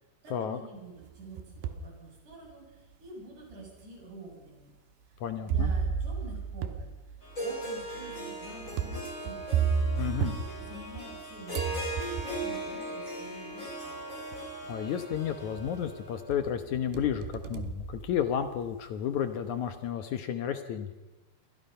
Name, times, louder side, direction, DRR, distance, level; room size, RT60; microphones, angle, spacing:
voice 1, 0.2-4.7 5.1-9.6 10.2-14.0, right 2 dB, 45° right, -1 dB, 8.7 m, -48 dB
sound 1, 1.0-1.9 2.5-2.6 3.5-3.6 5.5-11.2 11.5-12.5 13.7-13.8 14.3-14.7 15.1-15.9 16.3-18.7, right 6 dB, 80° right, 3.2 m, -33 dB
voice 2, 5.2-5.7 10.0-10.3 14.7-20.9, left 9 dB, 70° left, 8 dB, 1.8 m, -32 dB
Harp, 7.2-16.2, right 1 dB, 15° left, 6.5 m, -38 dB
28.5 x 23.5 x 5.6 m, 1.1 s
omnidirectional pair, 4.8 m